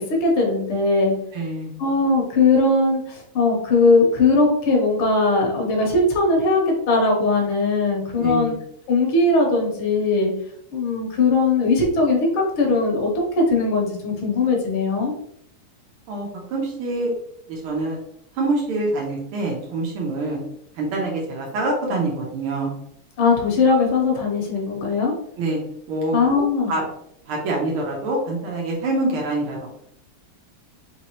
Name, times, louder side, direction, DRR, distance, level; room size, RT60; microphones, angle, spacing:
voice 1, 0.0-1.2 1.8-8.6 8.9-10.3 10.7-15.1 23.2-25.1 26.1-26.7, left 3 dB, 75° left, 0 dB, 1.9 m, -19 dB
voice 2, 1.3-1.7 8.2-8.5 16.1-17.1 17.5-18.0 18.4-20.4 20.8-22.7 25.4-25.6 25.9-26.2 26.7-26.8 27.3-29.7, right 2 dB, 80° right, -1 dB, 1.8 m, -25 dB
4.6 x 3.0 x 2.9 m, 0.71 s
omnidirectional pair, 2.4 m